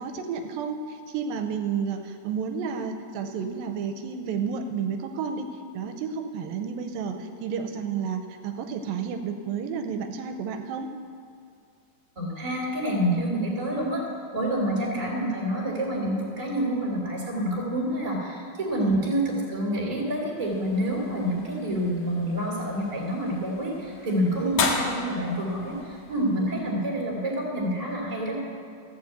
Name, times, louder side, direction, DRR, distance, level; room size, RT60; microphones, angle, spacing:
voice 1, 0.0-5.5 5.7-10.9 14.6-14.7 18.8-19.0 24.4-24.6 26.4-26.5, right 6 dB, 85° right, 6 dB, 2.4 m, -31 dB
voice 2, 12.2-14.0 14.3-28.4, equal, 10° right, -3 dB, 2.1 m, -27 dB
sound 1, 20.4-26.9, left 4 dB, 65° left, 2.6 m, -35 dB
14.5 x 7.0 x 8.0 m, 2.4 s
omnidirectional pair, 4.2 m